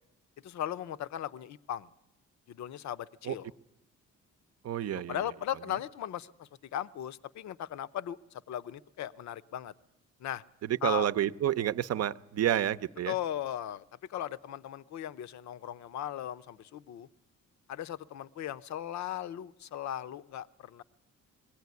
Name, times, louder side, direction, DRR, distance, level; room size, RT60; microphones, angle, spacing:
voice 1, 0.4-1.9 2.5-3.5 5.1-9.7 10.2-10.4 10.8-11.1 13.1-13.8 14.1-17.1 17.7-20.8, left 11 dB, 65° left, 15 dB, 0.7 m, -37 dB
voice 2, 4.6-5.2 10.6-13.1, right 11 dB, 55° right, 15 dB, 0.7 m, -29 dB
21.0 x 16.5 x 9.5 m, 0.95 s
cardioid pair, 90°, 30 cm